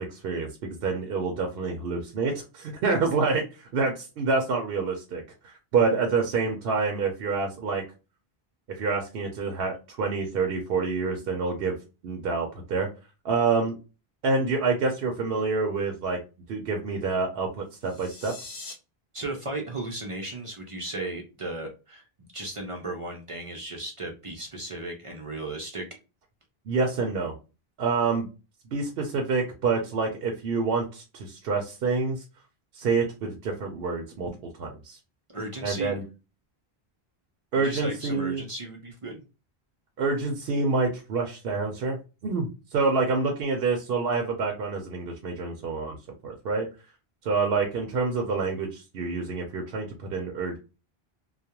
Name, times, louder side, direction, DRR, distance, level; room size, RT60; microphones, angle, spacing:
voice 1, 0.0-7.8 8.7-11.8 12.0-12.9 13.2-13.8 14.2-16.2 16.5-18.3 26.7-27.3 27.8-28.3 28.7-32.2 32.7-34.3 34.6-35.0 35.6-36.0 37.5-38.4 40.0-42.0 42.2-46.0 46.2-46.7 47.2-50.6, right 4 dB, 70° right, 2 dB, 0.8 m, -27 dB
sound 1, 17.7-18.7, left 3 dB, 45° left, 0.8 m, -42 dB
voice 2, 19.1-22.1 22.3-25.9 35.3-36.0 37.6-39.2, right 2 dB, 45° right, 2 dB, 0.4 m, -35 dB
2.3 x 2.1 x 2.8 m, 0.30 s
omnidirectional pair, 1.0 m